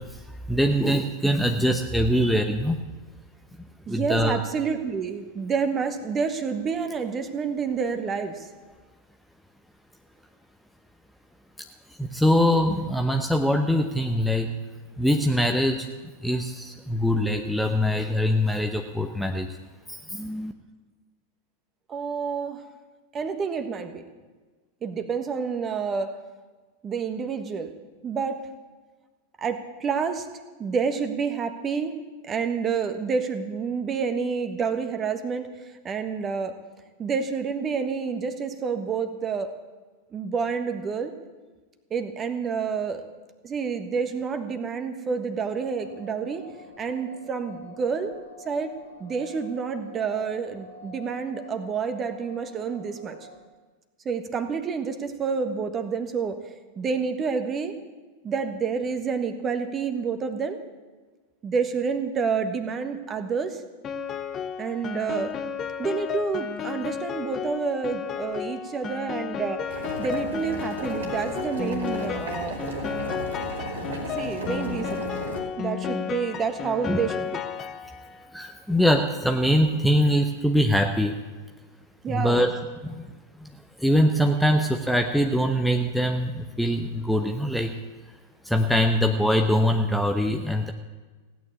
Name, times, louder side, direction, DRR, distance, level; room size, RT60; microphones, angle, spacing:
voice 1, 0.0-2.8 3.9-4.4 12.0-14.5 15.0-15.9 16.2-19.5 19.9-20.5 76.9-77.0 78.3-81.2 82.1-82.5 82.8-83.1 83.4-83.5 83.8-87.7 88.4-90.7, equal, ahead, 4 dB, 0.9 m, -23 dB
voice 2, 3.9-8.5 21.9-22.6 23.1-24.0 24.8-26.1 26.8-27.7 28.0-28.5 29.4-30.3 30.6-35.5 35.8-36.6 37.0-39.5 40.1-41.1 41.9-43.0 43.4-46.4 46.8-48.1 48.4-53.2 54.0-56.4 56.7-57.7 58.2-60.6 61.4-63.6 64.6-65.4 65.8-72.6 74.2-75.1 75.6-77.4 82.0-82.5, right 5 dB, 25° right, 8 dB, 1.4 m, -29 dB
sound 1, 45.5-53.4, left 2 dB, 80° left, 2.2 m, -47 dB
Piano, 63.8-78.2, left 8 dB, 25° left, 0.9 m, -33 dB
Boiling, 69.7-75.4, right 2 dB, 65° right, 2.8 m, -35 dB
16.5 x 9.4 x 8.4 m, 1.3 s
figure-of-eight pair, 90°, 0 cm